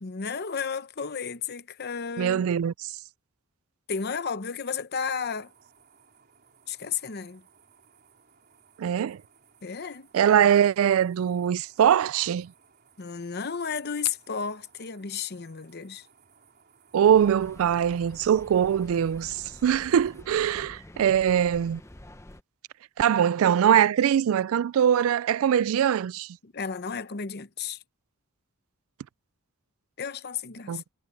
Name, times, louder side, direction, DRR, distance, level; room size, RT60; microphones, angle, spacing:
voice 1, 0.0-2.5 3.9-5.5 6.7-7.4 9.6-10.1 13.0-16.1 26.4-27.8 30.0-30.8, left 6 dB, 50° left, 0.8 m, -33 dB
voice 2, 2.2-2.7 8.8-9.2 10.1-12.5 16.9-21.8 23.0-26.3 30.7-30.8, right 9 dB, 70° right, 0.3 m, -22 dB
sound 1, 5.0-20.2, right 6 dB, 45° right, 4.0 m, -61 dB
sound 2, 17.0-22.4, left 1 dB, 15° left, 0.7 m, -48 dB
head